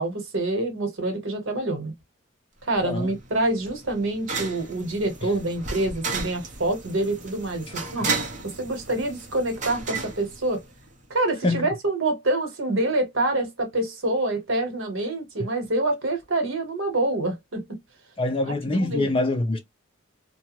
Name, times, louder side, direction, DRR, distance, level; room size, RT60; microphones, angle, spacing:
voice 1, 0.0-1.9 2.6-8.1 8.4-10.6 11.1-17.7 18.5-19.1, right 2 dB, 75° right, 1.1 m, -26 dB
sound 1, 2.7-11.0, right 4 dB, 35° right, 0.7 m, -34 dB
voice 2, 2.8-3.1 11.4-11.7 15.4-15.5 18.2-19.6, left 2 dB, 25° left, 0.4 m, -25 dB
2.4 x 2.2 x 2.8 m
head